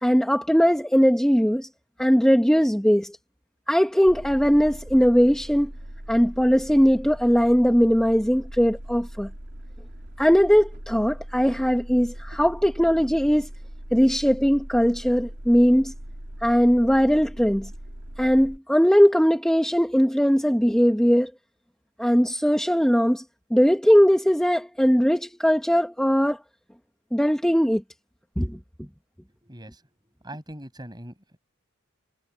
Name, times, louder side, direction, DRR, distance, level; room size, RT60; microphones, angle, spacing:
voice 1, 0.0-1.7 2.0-3.2 3.7-5.7 6.1-9.3 10.2-13.5 13.9-15.9 16.4-17.7 18.2-21.3 22.0-23.2 23.5-26.4 27.1-27.8 28.4-28.9, equal, 5° left, 1.4 m, -20 dB
sound 1, 4.1-18.6, right 1 dB, 50° right, 3.1 m, -40 dB
voice 2, 29.4-29.8 30.2-31.4, right 1 dB, 20° right, 7.0 m, -41 dB
head